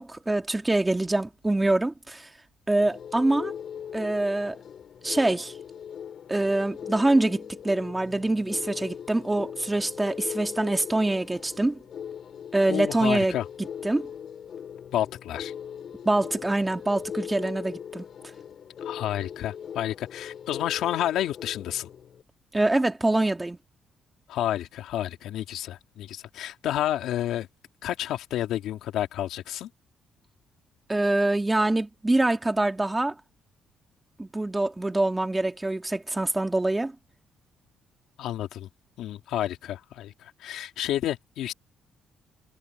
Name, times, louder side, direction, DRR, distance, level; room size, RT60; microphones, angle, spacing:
voice 1, 0.0-2.3 2.7-3.5 3.9-4.6 5.0-5.5 6.3-11.8 12.5-13.4 13.8-14.1 16.0-18.1 22.5-23.6 30.9-33.1 34.2-36.9, right 2 dB, 15° right, 2.5 m, -25 dB
sound 1, 2.8-22.2, left 8 dB, 60° left, 3.7 m, -40 dB
voice 2, 12.7-13.5 14.9-15.5 18.8-21.9 24.3-27.5 27.8-29.7 38.2-38.7 39.0-41.5, left 12 dB, 85° left, 2.4 m, -30 dB
cardioid pair, 90°, 0 cm